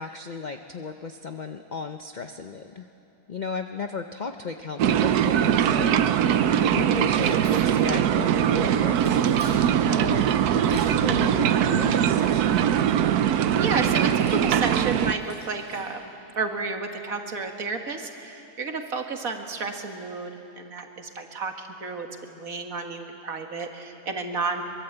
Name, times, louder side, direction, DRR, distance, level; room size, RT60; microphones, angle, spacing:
voice 1, 0.0-2.9 3.3-6.2 6.7-9.2 9.9-10.3 10.5-12.8, left 4 dB, 45° left, 7 dB, 0.6 m, -35 dB
sound 1, 4.8-15.1, right 9 dB, 85° right, 1.2 m, -21 dB
sound 2, 7.1-8.0 9.0-9.6 10.6-11.1 12.2-12.9 14.1-15.9, equal, 5° right, 7.6 m, -47 dB
voice 2, 13.6-20.3 20.6-24.6, right 4 dB, 65° right, 4 dB, 2.0 m, -32 dB
23.0 x 22.5 x 8.0 m, 2.9 s
omnidirectional pair, 1.6 m